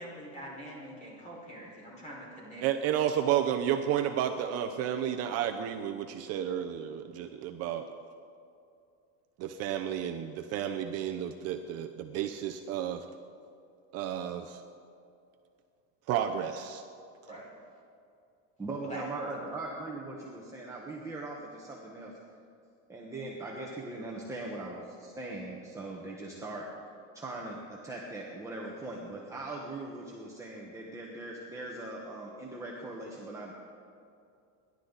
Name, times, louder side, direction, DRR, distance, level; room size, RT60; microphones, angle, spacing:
voice 1, 0.0-2.6 17.3-17.5 18.8-19.3, right 1 dB, 20° left, -4 dB, 5.1 m, -43 dB
voice 2, 2.6-7.9 9.4-13.0 13.9-14.6 16.1-16.8, right 10 dB, 45° right, 6 dB, 0.7 m, -31 dB
voice 3, 18.6-22.1 22.9-26.7 27.1-33.5, right 2 dB, 10° right, -3 dB, 1.3 m, -40 dB
28.0 x 12.0 x 4.1 m, 2.5 s
cardioid pair, 165°, 36 cm